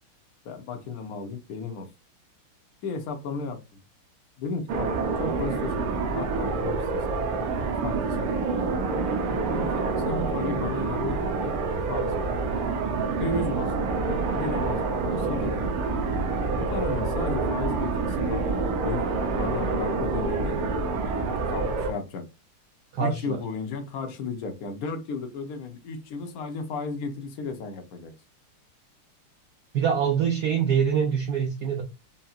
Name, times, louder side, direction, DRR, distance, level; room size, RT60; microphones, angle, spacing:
voice 1, 0.4-1.9 2.8-3.6 4.4-5.9 6.1-7.3 7.6-8.7 9.5-11.6 11.9-12.2 13.1-15.7 16.6-20.6 21.0-22.3 23.0-28.1, left 4 dB, 60° left, 1.0 m, -34 dB
sound 1, 4.7-21.9, right 4 dB, 90° right, 1.7 m, -27 dB
voice 2, 22.9-23.4 29.7-31.8, right 7 dB, 70° right, 0.9 m, -24 dB
5.6 x 2.7 x 2.4 m
omnidirectional pair, 2.3 m